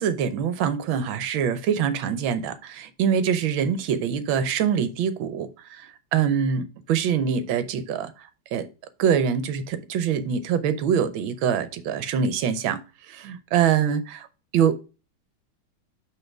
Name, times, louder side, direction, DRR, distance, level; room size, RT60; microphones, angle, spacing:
voice 1, 0.0-5.5 5.8-5.9 6.1-8.1 8.5-8.7 9.0-12.8 13.1-14.3 14.5-14.8, right 7 dB, 75° right, 1.5 m, -24 dB
5.7 x 3.9 x 5.8 m
omnidirectional pair, 2.3 m